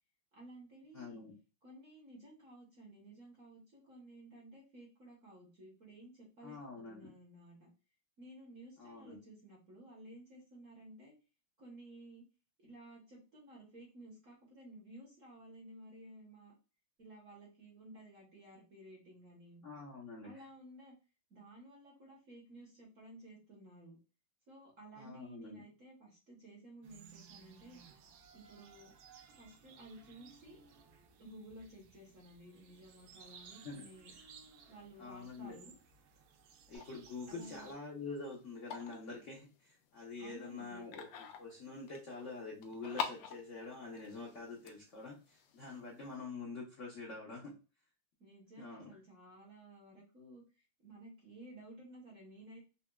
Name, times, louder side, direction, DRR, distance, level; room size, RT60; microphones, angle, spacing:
voice 1, 0.3-1.2 1.6-7.7 8.2-11.1 11.6-12.2 12.6-16.5 17.0-19.6 20.2-20.9 21.3-24.0 24.5-27.8 28.3-28.9 29.4-30.6 31.2-34.1 34.7-35.7 37.3-37.7 40.2-41.0 48.2-50.4 50.8-52.6, right 1 dB, 50° right, -3 dB, 1.0 m, -55 dB
voice 2, 0.9-1.3 6.4-7.1 8.8-9.2 19.6-20.5 24.9-25.6 33.5-33.9 34.2-34.3 35.0-35.6 36.7-47.5 48.6-49.0, left 3 dB, 65° left, -3 dB, 0.7 m, -46 dB
sound 1, 26.8-37.7, right 6 dB, 75° right, 1.2 m, -59 dB
sound 2, 36.7-46.1, left 7 dB, 80° left, 1.4 m, -48 dB
4.1 x 2.1 x 2.2 m, 0.32 s
omnidirectional pair, 2.3 m